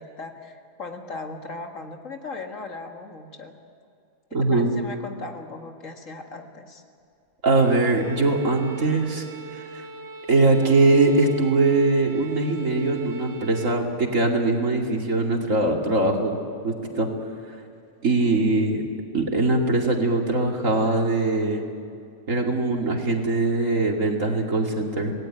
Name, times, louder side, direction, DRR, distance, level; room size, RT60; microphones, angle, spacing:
voice 1, 0.0-3.5 4.3-6.8, left 3 dB, 55° left, 4 dB, 2.1 m, -38 dB
voice 2, 4.3-4.7 7.4-9.3 9.5-9.9 10.3-17.1 18.0-18.8 19.1-21.6 22.3-25.1, right 2 dB, 55° right, 1 dB, 2.9 m, -22 dB
Bowed string instrument, 7.5-13.9, right 4 dB, 10° right, 2.1 m, -40 dB
27.5 x 19.0 x 8.9 m, 2.5 s
omnidirectional pair, 1.6 m